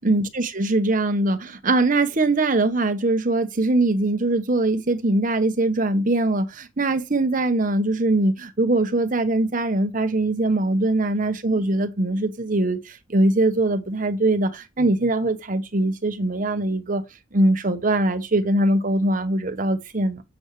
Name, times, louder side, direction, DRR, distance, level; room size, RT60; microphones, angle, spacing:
voice 1, 0.0-17.0 17.3-20.2, right 2 dB, 45° right, 1.0 m, -22 dB
8.0 x 7.0 x 3.2 m
head